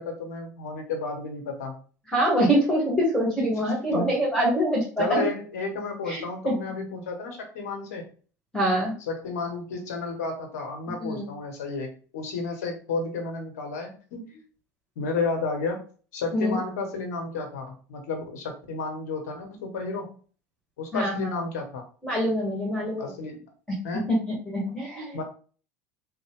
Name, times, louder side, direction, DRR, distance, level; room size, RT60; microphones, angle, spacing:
voice 1, 0.0-1.8 3.9-4.1 5.0-8.0 9.1-14.4 15.0-15.8 16.1-20.2 20.8-21.8 23.0-23.4 23.8-24.1 25.1-25.2, left 3 dB, 75° left, 3 dB, 1.0 m, -32 dB
voice 2, 2.1-5.2 6.1-6.6 8.5-8.9 11.0-11.2 16.3-16.6 20.9-21.3 22.0-23.1 24.1-24.2 24.5-25.2, equal, 10° left, -3 dB, 1.4 m, -24 dB
3.2 x 2.1 x 3.6 m, 0.40 s
hypercardioid pair, 75°, 9 cm